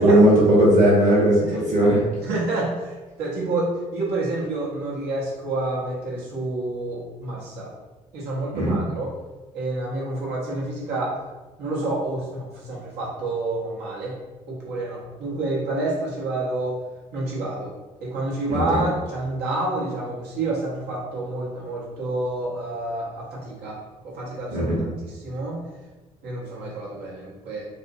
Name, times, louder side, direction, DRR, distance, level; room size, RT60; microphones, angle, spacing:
voice 1, 0.0-2.0 8.5-8.8 18.5-18.8 24.5-24.8, right 1 dB, 45° right, -6 dB, 1.1 m, -17 dB
voice 2, 2.2-7.7 8.1-9.1 9.5-11.2 11.6-14.2 14.5-16.8 17.1-17.7 18.0-23.8 24.0-24.7 25.0-25.6 26.2-27.7, right 2 dB, 65° right, -4 dB, 0.9 m, -28 dB
2.6 x 2.6 x 2.6 m, 1.2 s
hypercardioid pair, 45°, 18 cm